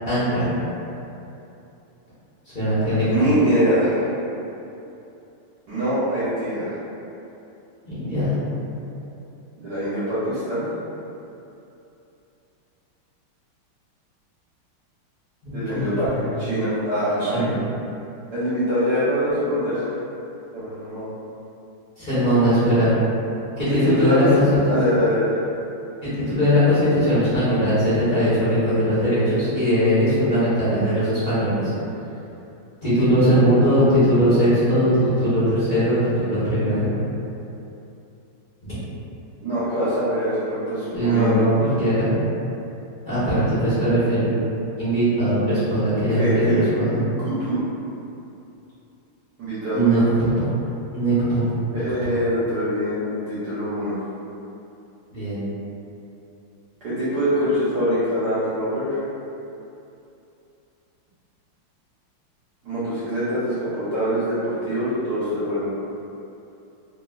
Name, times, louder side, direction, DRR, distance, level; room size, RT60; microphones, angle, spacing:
voice 1, 0.0-0.6 2.5-3.3 7.8-8.3 15.4-15.8 16.2-16.3 17.2-17.5 22.0-22.9 23.6-24.7 26.0-31.7 32.8-36.9 40.9-42.1 43.1-44.3 44.8-47.0 49.7-50.5 50.9-51.5 51.7-51.8 55.1-55.4, equal, 45° left, -15 dB, 0.6 m, -20 dB
voice 2, 3.1-4.1 5.7-6.7 9.6-10.6 15.5-16.1 16.4-17.6 18.3-19.9 20.5-21.1 23.7-24.3 24.7-25.3 39.4-41.5 46.1-46.6 47.2-47.6 49.4-50.1 51.7-54.0 56.8-59.0 62.6-65.7, equal, 65° right, -13 dB, 1.2 m, -24 dB
3.1 x 2.8 x 2.3 m, 2.8 s
omnidirectional pair, 2.3 m